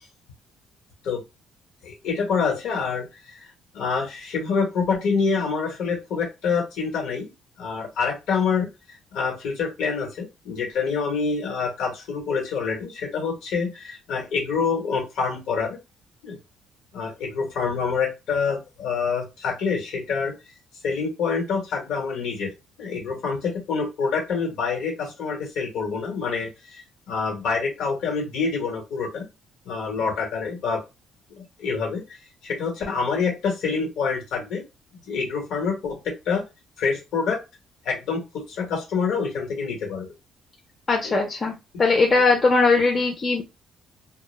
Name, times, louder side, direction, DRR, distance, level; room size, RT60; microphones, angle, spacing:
voice 1, 1.8-3.5 3.7-7.3 7.6-8.7 9.1-15.8 16.2-16.4 16.9-20.3 20.8-22.5 22.8-26.8 27.1-29.3 29.6-30.8 31.3-32.0 32.4-34.6 35.1-36.4 36.8-37.4 37.8-40.1 41.0-41.1, left 5 dB, 75° left, 0 dB, 1.0 m, -26 dB
voice 2, 40.9-41.5 41.8-43.4, left 3 dB, 30° left, 1 dB, 0.5 m, -19 dB
2.1 x 2.0 x 3.1 m, 0.24 s
cardioid pair, 125°, 0 cm